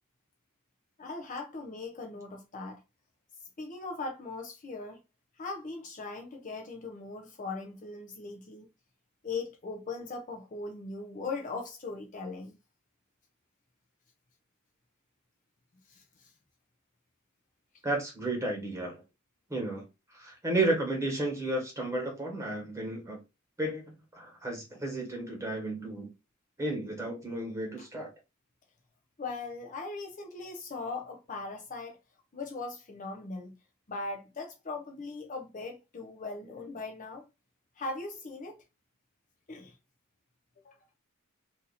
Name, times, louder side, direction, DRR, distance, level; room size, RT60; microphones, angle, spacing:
voice 1, 1.0-2.8 3.6-5.0 5.4-8.7 9.2-12.6 15.9-16.3 27.8-27.9 29.2-32.0 32.3-33.6 33.9-37.2 37.8-38.6 39.5-39.8 40.6-40.8, left 3 dB, 35° left, 0.5 m, -39 dB
voice 2, 17.8-19.0 19.5-19.8 20.1-23.2 23.6-26.1 26.6-28.1, right 2 dB, 15° right, 1.4 m, -33 dB
2.7 x 2.5 x 4.0 m
head